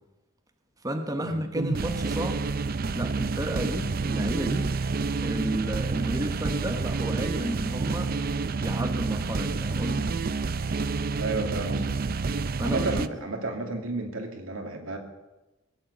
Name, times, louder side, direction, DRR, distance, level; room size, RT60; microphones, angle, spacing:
voice 1, 0.8-2.4 2.9-4.7 5.2-8.1 8.6-10.1 12.6-13.1, right 1 dB, 15° right, 5 dB, 1.2 m, -32 dB
sound 1, 1.5-13.1, right 4 dB, 45° right, 0.5 m, -29 dB
voice 2, 11.2-11.9 12.6-15.0, right 2 dB, 85° right, 3 dB, 2.5 m, -32 dB
19.5 x 8.7 x 8.1 m, 1.1 s
head